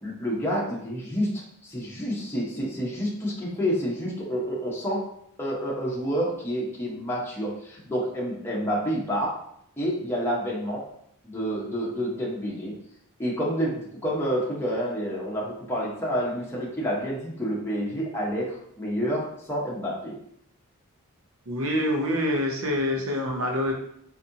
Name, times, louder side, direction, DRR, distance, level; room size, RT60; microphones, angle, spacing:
voice 1, 0.0-5.0 5.4-9.3 9.8-10.8 11.2-12.7 13.2-20.2, equal, 10° left, -5 dB, 0.9 m, -29 dB
voice 2, 21.5-23.7, left 1 dB, 70° right, 1 dB, 0.8 m, -26 dB
4.1 x 2.7 x 2.7 m, 0.71 s
head